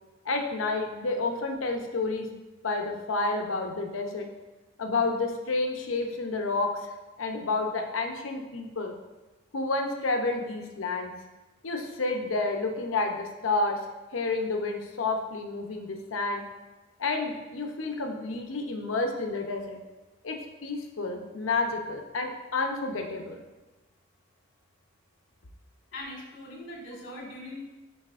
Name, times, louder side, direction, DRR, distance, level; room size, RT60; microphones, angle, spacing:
voice 1, 0.3-2.3 2.6-4.3 4.8-6.9 7.2-8.9 9.5-11.1 11.6-13.8 14.1-16.4 17.0-19.8 20.2-23.4, left 3 dB, 85° left, 3 dB, 0.7 m, -30 dB
voice 2, 25.9-27.6, left 1 dB, 70° left, -2 dB, 2.0 m, -41 dB
10.0 x 4.1 x 2.5 m, 1.1 s
head